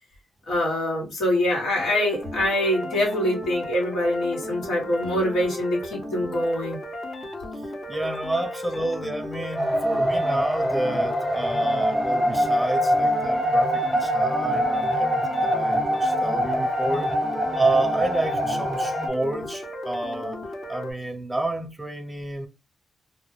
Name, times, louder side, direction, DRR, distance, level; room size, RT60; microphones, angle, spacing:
voice 1, 0.5-6.8, left 1 dB, 85° left, 1.2 m, -24 dB
sound 1, 1.8-20.9, left 1 dB, 45° left, 0.9 m, -35 dB
voice 2, 7.9-17.1 17.5-20.4 20.7-22.5, right 2 dB, 10° right, 0.7 m, -29 dB
sound 2, 9.6-19.1, equal, 15° left, 1.0 m, -24 dB
2.2 x 2.1 x 3.2 m
cardioid pair, 60°, 0 cm